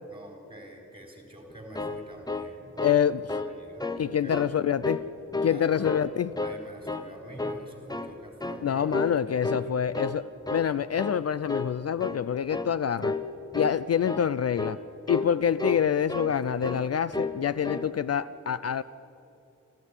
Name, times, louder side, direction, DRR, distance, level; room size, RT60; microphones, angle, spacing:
voice 1, 0.1-3.0 3.4-4.4 5.4-5.9 6.4-8.9 9.5-9.7, right 1 dB, 15° right, 2 dB, 3.9 m, -46 dB
sound 1, 1.5-3.0 3.3-3.5 3.8-4.5 4.8-5.6 5.8-6.6 6.9-7.1 7.4-8.2 8.4-8.7 8.9-9.2 9.4-10.2 10.4-10.7 11.0-11.2 11.5-11.7 12.0-12.2 12.5-12.7 13.0-13.3 13.5-13.8 14.0-14.3 14.6-14.8 15.1-15.3 15.6-16.4 16.6-16.8 17.1-17.4 17.6-17.9, left 3 dB, 15° left, 0.9 m, -31 dB
voice 2, 2.8-3.2 4.0-5.1 5.4-6.3 8.6-13.1 13.5-14.8 15.1-18.8, left 8 dB, 55° left, 16 dB, 0.5 m, -26 dB
27.0 x 14.5 x 9.7 m, 2.7 s
wide cardioid pair, 165°, 30 cm